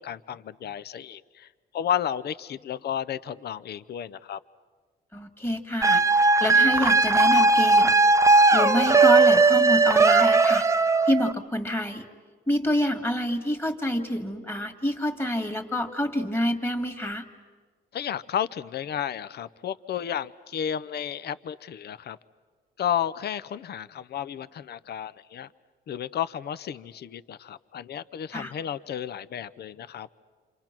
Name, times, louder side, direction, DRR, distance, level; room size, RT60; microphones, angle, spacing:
voice 1, 0.0-4.4 17.9-22.2 22.8-25.5 25.9-30.1, left 9 dB, 55° left, 16 dB, 0.7 m, -32 dB
voice 2, 5.1-8.0 8.5-10.6 11.1-12.1 12.5-17.2 28.3-28.5, left 1 dB, 10° left, 5 dB, 2.1 m, -27 dB
sound 1, 5.8-11.3, right 3 dB, 15° right, 0.6 m, -18 dB
29.0 x 26.5 x 6.0 m, 1.5 s
cardioid pair, 90°, 20 cm